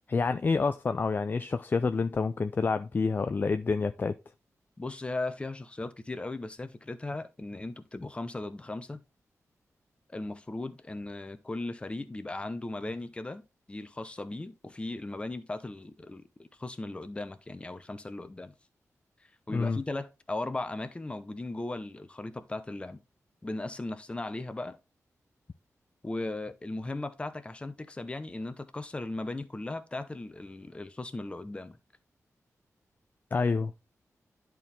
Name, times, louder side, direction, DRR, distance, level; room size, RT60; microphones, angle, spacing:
voice 1, 0.1-4.2 19.5-19.8 33.3-33.7, left 4 dB, 35° left, 0.4 m, -28 dB
voice 2, 4.8-9.0 10.1-13.4 13.7-16.3 16.6-18.5 19.5-23.0 23.4-24.8 26.0-31.8, left 2 dB, 20° left, 0.8 m, -37 dB
10.5 x 4.6 x 3.3 m
wide cardioid pair, 130°, 6 cm